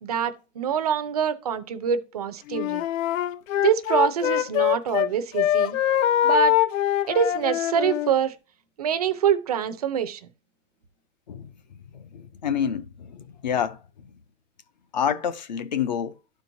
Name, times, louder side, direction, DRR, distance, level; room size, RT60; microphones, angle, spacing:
voice 1, 0.0-2.8 3.6-5.8 6.2-6.6 7.1-8.3 8.8-10.2, right 8 dB, 30° right, 0.4 m, -25 dB
Wind instrument woodwind instrument, 2.5-5.1 5.3-8.1, left 12 dB, 85° left, 0.6 m, -23 dB
voice 2, 12.4-13.8 14.9-16.1, left 8 dB, 35° left, 0.4 m, -27 dB
12.0 x 4.5 x 2.6 m
hypercardioid pair, 170°, 38 cm